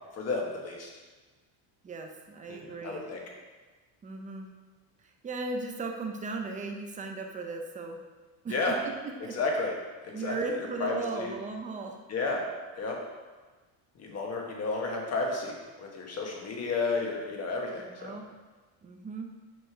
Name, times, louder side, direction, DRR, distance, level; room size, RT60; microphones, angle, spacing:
voice 1, 0.1-0.9 2.5-3.2 8.5-8.8 9.3-9.7 10.0-10.4 10.8-11.3 12.1-12.4 12.8-13.0 14.0-18.1, left 3 dB, 30° left, 0 dB, 1.3 m, -32 dB
voice 2, 1.8-3.1 4.0-4.5 5.2-8.0 8.4-8.6 8.8-9.4 10.1-12.0 17.8-18.3 18.8-19.3, right 3 dB, 15° right, 3 dB, 0.5 m, -37 dB
6.6 x 6.4 x 4.6 m, 1.3 s
cardioid pair, 175°, 49 cm